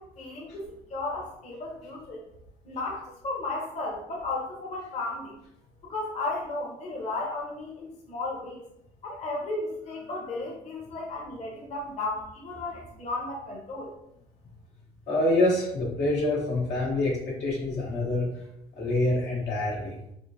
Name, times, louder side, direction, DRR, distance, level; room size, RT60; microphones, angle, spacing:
voice 1, 0.0-2.2 2.6-5.4 5.8-8.6 9.0-13.9, left 2 dB, 45° left, -2 dB, 0.7 m, -34 dB
voice 2, 15.1-18.3 18.8-19.9, left 2 dB, 90° left, -3 dB, 1.1 m, -26 dB
3.6 x 2.1 x 2.6 m, 0.80 s
cardioid pair, 110°, 17 cm